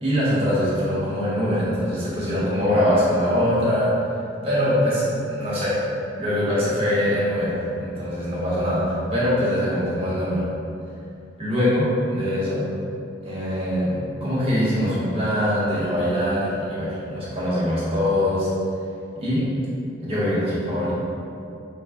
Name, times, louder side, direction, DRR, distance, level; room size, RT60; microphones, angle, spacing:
voice 1, 0.0-3.9 4.4-5.8 6.2-10.5 11.4-12.7 13.2-18.5 19.1-19.4 20.0-20.9, equal, 30° right, -8 dB, 0.9 m, -23 dB
3.3 x 2.1 x 3.5 m, 2.7 s
head